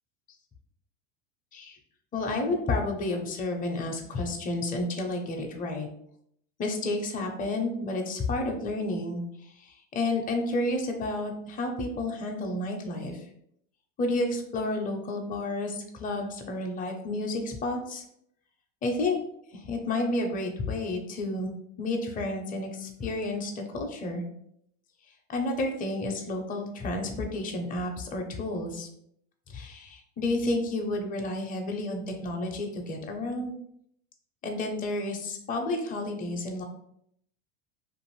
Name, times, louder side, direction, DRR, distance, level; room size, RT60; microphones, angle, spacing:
voice 1, 2.1-5.9 6.6-13.3 14.0-18.0 18.8-19.2 19.5-21.5 21.8-24.2 25.3-28.9 29.5-33.5 34.4-36.6, left 2 dB, 20° left, 2 dB, 0.6 m, -31 dB
2.5 x 2.5 x 3.0 m, 0.72 s
hypercardioid pair, 100°, 38 cm